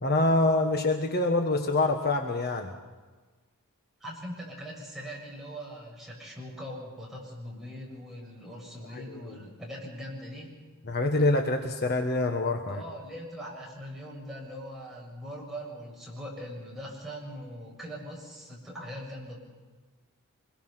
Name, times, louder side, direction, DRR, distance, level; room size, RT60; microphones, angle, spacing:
voice 1, 0.0-2.7 8.9-9.4 10.9-12.8, left 2 dB, 45° left, 4 dB, 1.4 m, -26 dB
voice 2, 4.0-10.6 12.7-19.4, equal, ahead, -4 dB, 7.2 m, -41 dB
26.0 x 22.0 x 5.8 m, 1.3 s
head